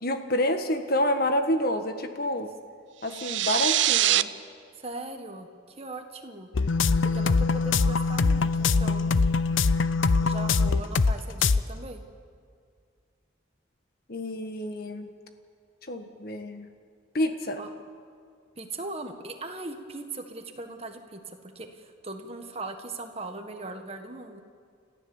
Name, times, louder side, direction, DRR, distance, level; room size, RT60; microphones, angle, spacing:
voice 1, 0.0-2.5 3.0-4.3 14.1-15.1 15.9-16.7 17.1-17.6, left 1 dB, 50° left, 7 dB, 1.6 m, -28 dB
sound 1, 3.1-4.2, right 13 dB, 70° right, 0.6 m, -23 dB
voice 2, 4.8-6.5 7.0-9.2 10.2-12.0 17.6-17.7 18.6-24.4, right 2 dB, 30° right, 5 dB, 1.6 m, -39 dB
sound 2, 6.5-11.1 11.4-11.6, left 4 dB, 85° left, 0.6 m, -23 dB
30.0 x 14.5 x 7.3 m, 2.2 s
head